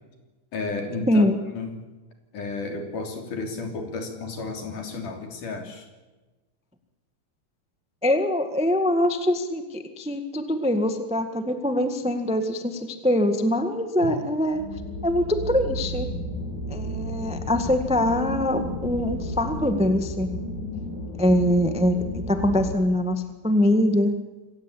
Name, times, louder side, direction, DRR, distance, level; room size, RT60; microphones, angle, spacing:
voice 1, 0.5-1.2 1.5-1.8 2.3-5.9, left 3 dB, 65° left, 4 dB, 4.8 m, -32 dB
voice 2, 1.1-1.4 8.0-14.6 15.0-16.1 16.7-20.3 21.2-24.1, left 1 dB, 5° right, 7 dB, 0.4 m, -23 dB
sound 1, 14.5-22.7, left 1 dB, 85° left, 8.0 m, -32 dB
26.5 x 17.0 x 8.7 m, 1.2 s
omnidirectional pair, 4.0 m